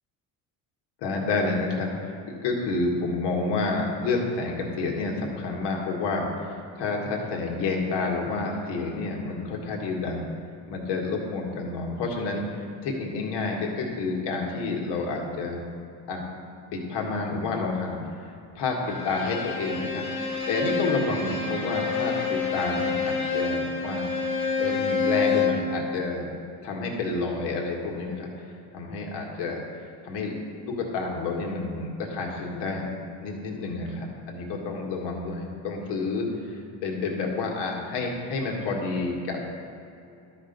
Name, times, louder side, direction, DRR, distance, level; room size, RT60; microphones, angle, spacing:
voice 1, 1.0-10.2 10.7-15.6 16.1-16.3 16.7-20.1 20.5-24.1 24.6-26.3 26.6-28.3 28.7-29.6 30.0-32.9 33.2-39.4, left 3 dB, 75° left, 0 dB, 1.8 m, -29 dB
Bowed string instrument, 18.8-25.7, left 4 dB, 50° left, 1.8 m, -27 dB
12.0 x 4.4 x 5.3 m, 2.7 s
cardioid pair, 95°, 41 cm